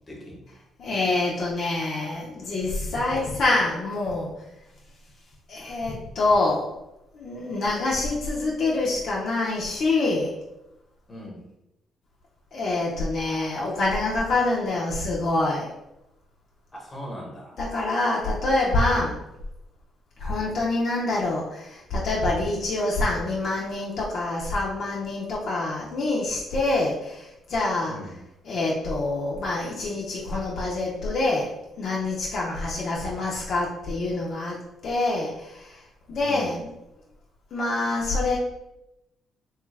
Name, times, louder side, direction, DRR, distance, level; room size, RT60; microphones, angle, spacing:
voice 1, 0.1-0.4 11.1-11.4 16.7-17.5 27.9-28.1 36.2-36.5, left 1 dB, 20° left, -2 dB, 1.1 m, -39 dB
voice 2, 0.8-4.3 5.5-6.8 7.1-10.4 12.5-15.7 17.6-19.2 20.2-28.1 28.4-34.6 34.8-35.8 36.1-36.7 37.5-38.4, left 2 dB, 60° left, -4 dB, 0.6 m, -26 dB
3.0 x 2.3 x 3.2 m, 0.89 s
cardioid pair, 90°, 0 cm